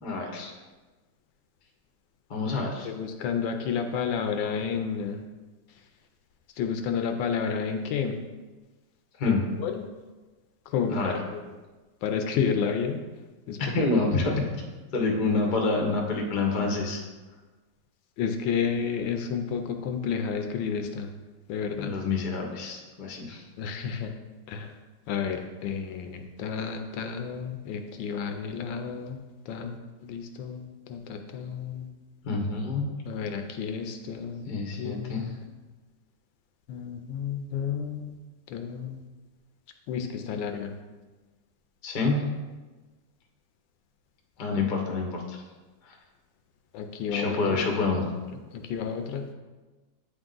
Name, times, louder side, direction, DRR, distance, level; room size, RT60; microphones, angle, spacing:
voice 1, 0.0-0.5 2.3-2.9 9.2-9.4 10.9-11.1 13.6-14.3 14.9-17.0 21.8-23.4 32.2-32.8 34.5-35.2 41.8-42.2 44.4-45.4 45.8-45.9 47.1-48.0, left 3 dB, 45° left, 0 dB, 0.6 m, -27 dB
voice 2, 2.8-5.2 6.6-8.2 9.2-9.9 10.7-11.4 12.0-13.0 13.5-13.6 18.2-21.1 21.5-21.9 23.6-24.1 24.5-24.7 25.1-29.2 29.5-30.6 30.9-31.9 33.1-34.5 34.8-35.4 36.7-38.2 38.5-39.0 39.9-40.8 46.7-47.6 48.0-48.1 48.5-49.3, left 6 dB, 75° left, 5 dB, 1.2 m, -31 dB
8.5 x 3.5 x 3.8 m, 1.3 s
omnidirectional pair, 2.2 m